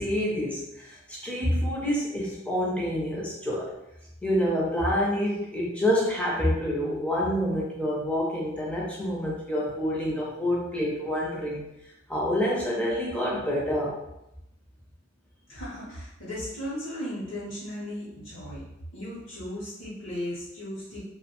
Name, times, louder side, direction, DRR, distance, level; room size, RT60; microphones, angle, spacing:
voice 1, 0.0-3.7 4.2-11.7 12.1-14.0, equal, 5° left, -4 dB, 0.5 m, -27 dB
voice 2, 15.5-18.6 18.9-21.0, equal, 60° left, -8 dB, 0.7 m, -36 dB
2.5 x 2.1 x 2.9 m, 0.86 s
head